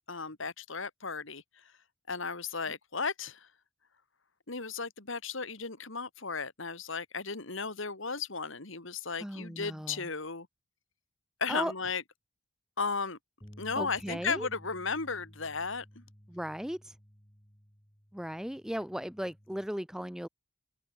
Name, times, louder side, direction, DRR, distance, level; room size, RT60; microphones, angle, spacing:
voice 1, 0.1-1.7 2.1-3.5 4.5-10.5 11.4-12.0 12.8-13.2 13.6-16.0, left 4 dB, 65° left, 2.2 m, -35 dB
voice 2, 9.2-10.1 11.5-11.7 13.8-14.5 16.3-16.9 18.1-20.3, equal, 5° right, 0.6 m, -36 dB
sound 1, 13.4-19.7, equal, 15° left, 3.4 m, -54 dB
head